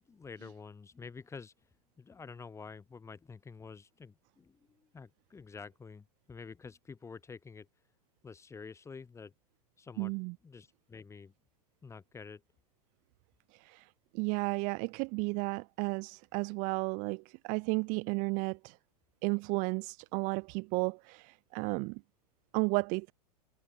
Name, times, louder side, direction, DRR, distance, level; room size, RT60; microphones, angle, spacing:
voice 1, 0.1-1.5 2.0-7.7 8.2-9.3 9.8-10.1 10.4-11.3 11.8-12.4, left 5 dB, 15° left, 4.1 m, -48 dB
voice 2, 10.0-10.3 13.5-13.9 14.1-18.8 19.2-22.0 22.5-23.1, right 31 dB, 40° right, 1.4 m, -33 dB
figure-of-eight pair, 95°, 21 cm